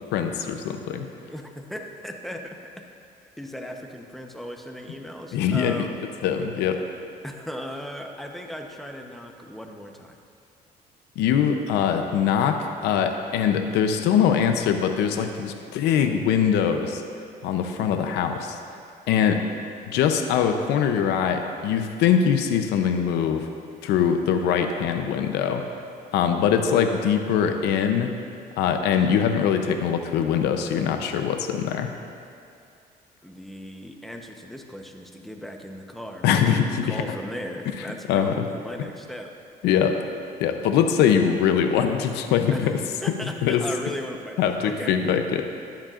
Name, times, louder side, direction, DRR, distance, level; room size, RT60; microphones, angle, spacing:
voice 1, 0.1-1.1 5.3-5.9 6.2-6.8 11.2-17.0 17.4-18.6 19.1-19.4 19.9-23.5 23.8-25.6 26.1-28.2 28.6-31.9 36.2-37.0 38.1-38.5 39.6-40.0 40.4-42.8 43.4-43.6 44.4-45.5, left 8 dB, 85° left, 6 dB, 0.7 m, -22 dB
voice 2, 1.2-2.8 3.2-6.1 7.2-10.2 33.2-39.3 42.5-44.9, equal, ahead, 3 dB, 0.9 m, -37 dB
13.5 x 10.5 x 2.5 m, 2.4 s
cardioid pair, 110°, 17 cm